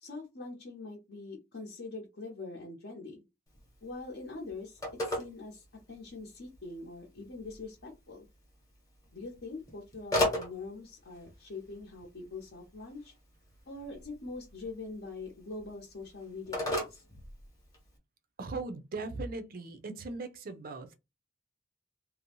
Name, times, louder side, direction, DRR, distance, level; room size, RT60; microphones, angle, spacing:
voice 1, 0.0-3.2 3.8-8.3 9.1-13.1 13.7-17.0, left 3 dB, 60° left, 0.7 m, -43 dB
Telephone, 3.5-18.0, left 1 dB, 20° left, 0.8 m, -39 dB
voice 2, 18.4-21.0, right 3 dB, 45° right, 0.4 m, -39 dB
2.6 x 2.0 x 2.8 m
head